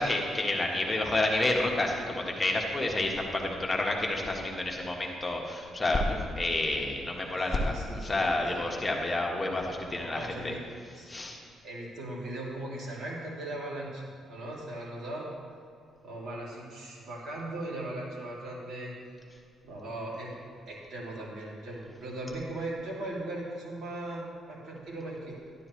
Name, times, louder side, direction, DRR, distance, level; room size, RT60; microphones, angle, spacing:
voice 1, 0.0-10.5 11.1-11.4, left 2 dB, 20° left, 0 dB, 1.4 m, -29 dB
voice 2, 7.6-8.7 9.9-10.6 10.9-11.1 11.6-15.3 16.0-18.9 19.6-20.3 20.7-25.4, right 1 dB, 65° right, -5 dB, 3.1 m, -38 dB
12.0 x 11.0 x 3.2 m, 2.3 s
cardioid pair, 90°, 0 cm